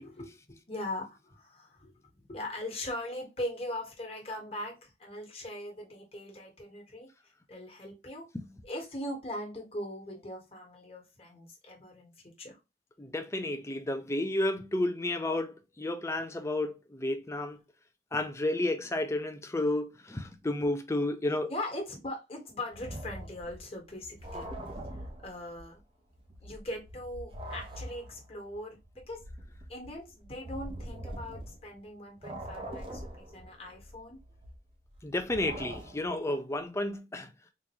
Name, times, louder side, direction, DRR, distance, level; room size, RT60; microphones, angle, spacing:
voice 1, 0.0-8.3 8.6-12.6 21.5-24.5 25.2-25.8 26.4-29.3 29.7-34.2, left 1 dB, 35° left, 1.3 m, -40 dB
voice 2, 13.0-17.6 18.1-21.5 35.0-37.3, left 1 dB, 15° left, 0.5 m, -31 dB
sound 1, 22.7-25.8 26.1-31.9 32.2-36.3, right 1 dB, 30° right, 0.7 m, -43 dB
3.8 x 2.6 x 3.0 m
head